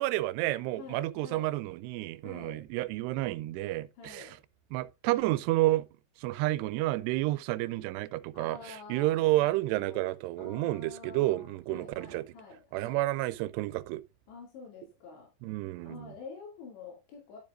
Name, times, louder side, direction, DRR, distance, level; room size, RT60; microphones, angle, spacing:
voice 1, 0.0-4.4 4.7-5.9 6.2-12.2 12.7-14.0 15.4-16.1, right 17 dB, 80° right, 2.6 m, -30 dB
voice 2, 0.7-1.5 2.2-2.6 4.0-4.4 8.3-13.1 14.3-15.3 15.8-17.4, left 5 dB, 85° left, 4.8 m, -48 dB
12.0 x 7.1 x 2.5 m
omnidirectional pair, 5.0 m